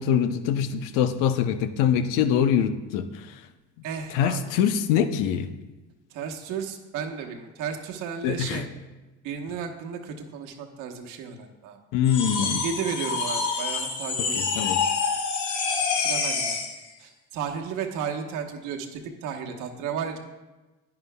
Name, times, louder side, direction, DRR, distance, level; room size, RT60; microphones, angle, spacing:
voice 1, 0.0-3.1 4.1-5.5 8.2-8.6 11.9-12.6 14.3-14.8, left 8 dB, 80° left, 10 dB, 0.7 m, -24 dB
voice 2, 3.8-4.5 6.1-8.6 9.2-11.8 12.4-14.8 15.9-16.6 17.0-20.2, right 7 dB, 75° right, 3 dB, 1.2 m, -34 dB
sound 1, 12.0-16.8, left 5 dB, 65° left, 1.5 m, -27 dB
10.5 x 9.8 x 2.3 m, 1.1 s
cardioid pair, 110°, 31 cm